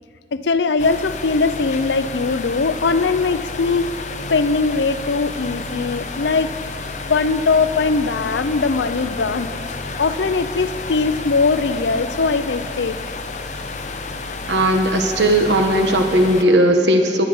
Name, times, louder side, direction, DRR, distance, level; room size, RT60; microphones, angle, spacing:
voice 1, 0.3-3.9 4.3-6.5 7.1-9.5 10.0-13.0, left 4 dB, 85° left, 12 dB, 0.6 m, -20 dB
sound 1, 0.8-16.4, left 3 dB, 40° left, 0.7 m, -31 dB
voice 2, 14.5-17.2, right 1 dB, 80° right, 4 dB, 1.3 m, -16 dB
20.5 x 8.7 x 5.4 m, 2.4 s
head